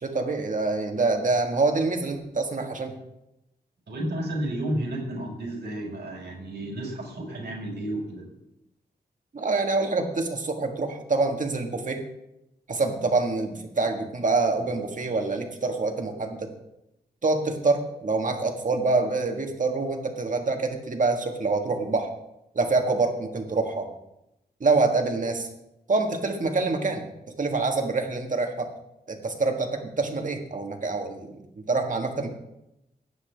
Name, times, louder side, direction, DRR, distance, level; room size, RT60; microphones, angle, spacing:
voice 1, 0.0-2.9 9.3-12.0 12.7-16.5 17.2-22.1 22.5-23.9 24.6-25.5 25.9-27.0 27.4-28.7 29.1-31.4 31.7-32.3, right 3 dB, 50° right, 4 dB, 1.6 m, -26 dB
voice 2, 3.9-8.3, right 1 dB, 85° right, -2 dB, 5.2 m, -32 dB
16.5 x 9.9 x 3.5 m, 0.86 s
wide cardioid pair, 135°, 17 cm